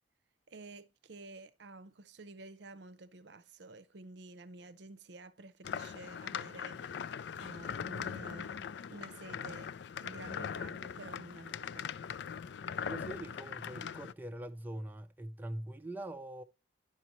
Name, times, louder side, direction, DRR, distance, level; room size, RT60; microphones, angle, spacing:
voice 1, 0.5-7.0 7.3-9.7 10.0-11.9, right 2 dB, 65° right, 0.6 m, -51 dB
sound 1, 5.6-14.1, left 7 dB, 65° left, 0.3 m, -41 dB
voice 2, 12.8-16.4, right 1 dB, 10° right, 0.4 m, -43 dB
10.0 x 5.5 x 3.0 m
head